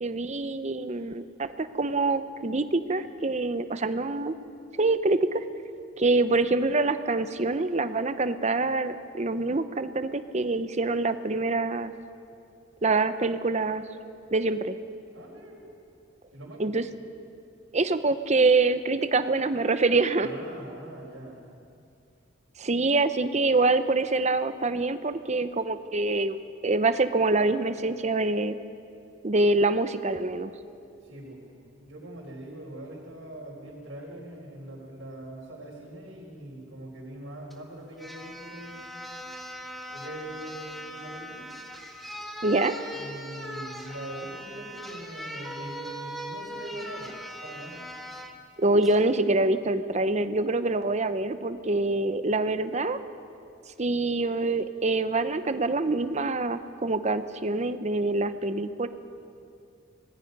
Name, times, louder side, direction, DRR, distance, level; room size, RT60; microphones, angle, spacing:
voice 1, 0.0-4.3 4.8-5.4 6.0-11.9 12.8-13.8 14.3-14.8 16.6-16.8 17.7-20.3 22.6-26.4 26.6-28.6 29.2-30.5 42.4-42.8 48.6-53.0 53.8-58.9, right 3 dB, 35° right, 11 dB, 0.8 m, -25 dB
voice 2, 15.1-15.6 16.3-16.7 20.2-21.4 31.0-31.4 31.8-39.0 39.9-41.5 42.9-47.8, right 1 dB, 80° right, -6 dB, 4.2 m, -42 dB
sound 1, 37.5-37.6 38.0-48.3 48.8-49.0, equal, ahead, 1.7 m, -40 dB
25.5 x 20.0 x 5.4 m, 2.5 s
head